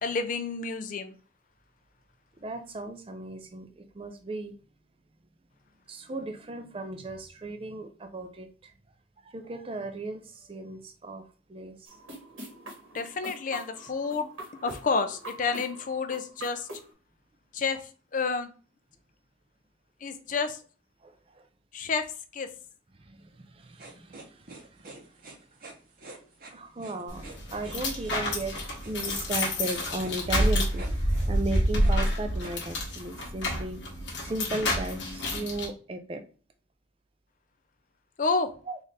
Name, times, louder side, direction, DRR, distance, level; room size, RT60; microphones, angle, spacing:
voice 1, 0.0-1.1 12.9-16.7 17.5-18.5 20.0-20.6 21.7-22.0 22.3-22.5 38.2-38.5, left 4 dB, 40° left, 0.4 m, -30 dB
voice 2, 2.4-4.6 5.9-8.7 9.2-11.9 21.0-21.5 23.0-24.9 26.5-28.6 28.8-36.2 38.7-38.8, right 2 dB, 30° right, 0.4 m, -36 dB
sound 1, 11.9-16.9, right 1 dB, 85° right, 1.6 m, -44 dB
sound 2, 23.7-32.5, right 2 dB, 45° right, 0.8 m, -47 dB
sound 3, 27.1-35.7, equal, 65° left, 1.3 m, -28 dB
4.0 x 2.5 x 3.2 m
head